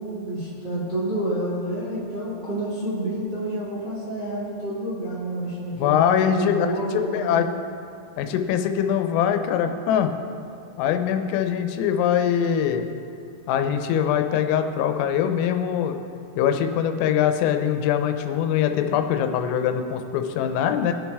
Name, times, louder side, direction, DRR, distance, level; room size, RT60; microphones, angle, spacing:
voice 1, 0.0-7.5, right 1 dB, 45° right, -9 dB, 1.4 m, -29 dB
voice 2, 5.7-7.5 8.2-10.1 10.8-12.9 13.5-16.0 16.3-20.9, left 9 dB, 85° left, 7 dB, 3.3 m, -23 dB
21.5 x 7.3 x 3.5 m, 2.5 s
omnidirectional pair, 5.8 m